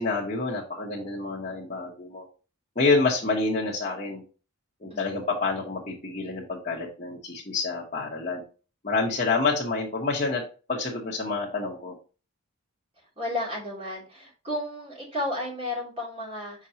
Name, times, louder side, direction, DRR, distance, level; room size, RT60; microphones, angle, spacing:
voice 1, 0.0-2.3 2.7-4.2 4.8-8.4 8.8-10.4 10.7-12.0, left 3 dB, 30° left, -6 dB, 1.2 m, -28 dB
voice 2, 13.2-16.7, left 1 dB, 25° right, -3 dB, 2.9 m, -33 dB
6.2 x 5.3 x 2.8 m, 0.34 s
head